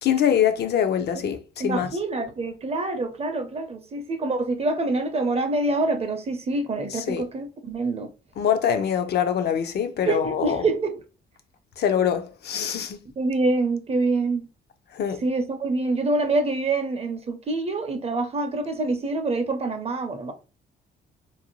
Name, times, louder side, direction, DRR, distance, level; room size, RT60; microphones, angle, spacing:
voice 1, 0.0-2.0 6.9-7.3 8.4-10.7 11.8-13.0 14.9-15.2, left 8 dB, 55° left, 0.5 m, -24 dB
voice 2, 1.6-8.1 10.1-10.9 13.2-14.4 15.2-20.3, right 2 dB, 30° right, 0.6 m, -26 dB
2.6 x 2.1 x 2.9 m
cardioid pair, 90°, 20 cm